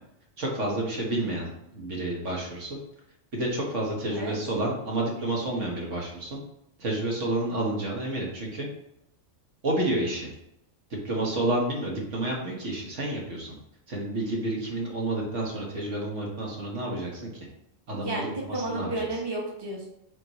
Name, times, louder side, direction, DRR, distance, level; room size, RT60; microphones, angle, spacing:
voice 1, 0.4-2.8 3.3-6.4 6.8-8.7 9.6-10.3 11.0-13.5 13.9-17.3 17.9-19.0, right 1 dB, 70° right, -2 dB, 1.7 m, -30 dB
voice 2, 18.0-19.9, right 1 dB, 20° right, -2 dB, 1.2 m, -32 dB
7.5 x 4.1 x 3.0 m, 0.81 s
omnidirectional pair, 1.3 m